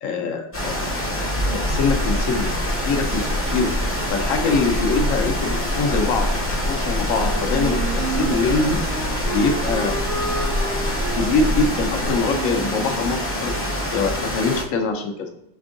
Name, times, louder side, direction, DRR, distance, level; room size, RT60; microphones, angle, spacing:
voice 1, 0.0-0.9 1.2-2.5 2.8-8.8 9.3-10.0 11.1-13.5 13.9-15.3, left 4 dB, 85° left, 4 dB, 1.0 m, -24 dB
sound 1, 0.5-14.6, equal, 15° left, 0.5 m, -26 dB
sound 2, 1.7-12.2, left 1 dB, 50° right, 0.7 m, -27 dB
Wind instrument woodwind instrument, 7.1-13.8, right 3 dB, 90° right, 1.5 m, -32 dB
5.3 x 3.4 x 2.6 m, 0.84 s
omnidirectional pair, 1.3 m